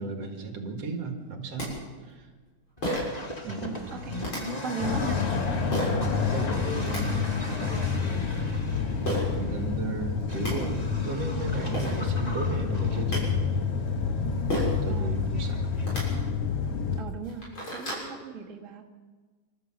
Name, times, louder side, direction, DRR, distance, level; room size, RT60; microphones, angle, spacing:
voice 1, 0.0-1.7 2.0-2.3 3.4-3.8 5.9-7.8 9.4-13.4 14.8-15.6, right 3 dB, 55° right, 4 dB, 2.8 m, -35 dB
sound 1, 1.3-1.4 1.6-1.7 2.8-3.2 4.2-4.4 5.7-6.0 6.6-7.0 9.0-9.2 10.0-10.1 10.3-10.5 11.4-11.5 11.7-12.0 12.8-13.2 14.5-14.8 15.8-16.0 16.7-16.8 17.2-18.1, equal, 40° left, 7.6 m, -31 dB
Accelerating revving vroom, 2.8-16.3, left 1 dB, 15° left, 1.4 m, -39 dB
voice 2, 3.6-5.2 14.9-15.2 17.0-18.8, right 6 dB, 30° right, -1 dB, 1.7 m, -38 dB
sound 2, 4.8-17.0, left 6 dB, 60° left, 2.0 m, -29 dB
26.5 x 13.5 x 7.5 m, 1.4 s
omnidirectional pair, 3.6 m